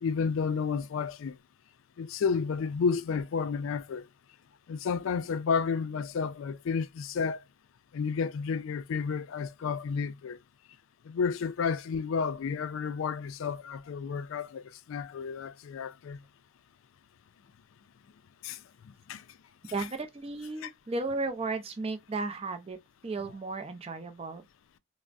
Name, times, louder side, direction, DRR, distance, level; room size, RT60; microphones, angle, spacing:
voice 1, 0.0-1.4 2.0-4.1 4.7-7.4 7.9-10.4 11.1-14.6 14.9-16.2 18.4-19.2 20.6-20.7, left 5 dB, 70° left, 0.3 m, -31 dB
voice 2, 19.7-24.4, right 3 dB, 30° right, 0.4 m, -35 dB
3.3 x 2.0 x 2.4 m
head